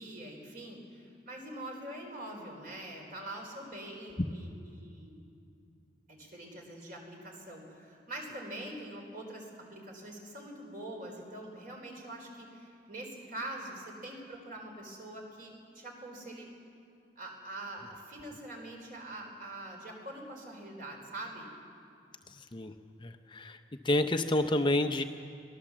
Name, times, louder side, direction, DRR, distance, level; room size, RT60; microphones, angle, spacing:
voice 1, 0.0-5.2 6.1-16.5 17.2-21.5, right 1 dB, 50° right, 1 dB, 4.4 m, -44 dB
voice 2, 22.4-22.7 23.0-23.6 23.8-25.0, left 1 dB, 25° left, 7 dB, 0.6 m, -29 dB
23.0 x 17.5 x 7.4 m, 2.5 s
head